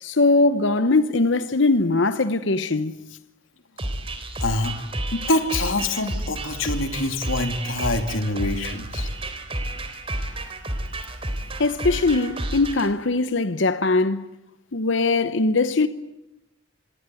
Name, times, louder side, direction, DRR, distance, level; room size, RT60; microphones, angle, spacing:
voice 1, 0.0-3.0 11.6-14.3 14.7-15.9, left 3 dB, 65° left, 0.9 m, -21 dB
sound 1, 3.8-12.9, right 1 dB, 30° right, 3.6 m, -31 dB
voice 2, 4.4-4.7 5.1-9.1, left 2 dB, 85° left, 2.8 m, -25 dB
26.0 x 22.0 x 9.2 m
head